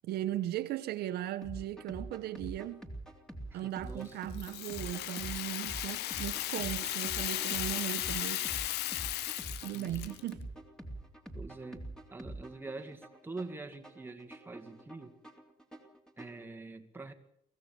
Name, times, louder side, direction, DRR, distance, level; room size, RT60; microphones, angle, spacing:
voice 1, 0.0-2.9 3.5-8.4 9.6-10.5, right 13 dB, 70° right, 1.1 m, -37 dB
sound 1, 1.4-16.4, right 1 dB, 5° left, 3.3 m, -46 dB
voice 2, 3.5-4.2 9.7-10.2 11.3-15.2 16.2-17.1, right 3 dB, 10° right, 2.1 m, -45 dB
Rattle (instrument), 4.3-10.3, left 15 dB, 80° left, 0.9 m, -36 dB
24.0 x 16.5 x 7.2 m
cardioid pair, 110°, 17 cm